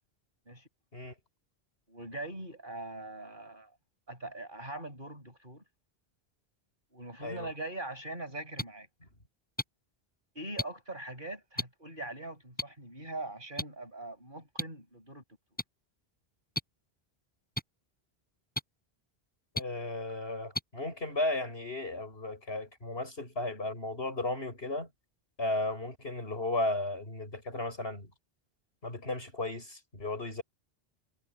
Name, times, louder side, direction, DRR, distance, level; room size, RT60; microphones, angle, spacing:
voice 1, 1.9-3.7 4.1-5.6 6.9-8.9 10.3-15.2, right 2 dB, 55° right, 7.9 m, -42 dB
sound 1, 8.6-8.7 9.6-9.7 10.6-10.7 11.6-11.7 12.6-12.7 13.6-13.7 14.6-14.7 15.6-15.7 16.6-16.7 17.6-17.7 18.6-18.7 19.6-19.7 20.5-20.6 21.5-21.6, left 1 dB, 10° left, 4.0 m, -32 dB
voice 2, 19.5-24.9 25.4-28.1 28.8-30.4, left 2 dB, 70° left, 7.2 m, -35 dB
omnidirectional pair, 1.1 m